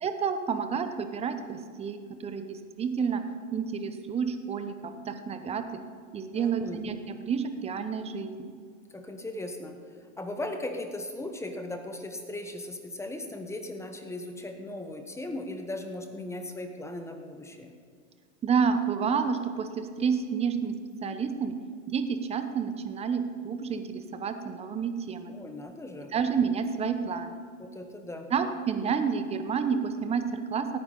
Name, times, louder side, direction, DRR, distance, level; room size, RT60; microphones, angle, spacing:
voice 1, 0.0-3.2 3.5-5.7 6.1-7.0 7.2-8.5 18.4-20.7 21.0-21.5 21.9-25.3 26.1-27.4 28.3-30.8, right 6 dB, 15° right, 8 dB, 0.9 m, -29 dB
voice 2, 6.3-6.8 8.9-17.7 25.3-26.1 27.6-28.3, left 1 dB, 5° left, 5 dB, 1.1 m, -38 dB
17.0 x 9.5 x 4.0 m, 2.1 s
hypercardioid pair, 120°, 40 cm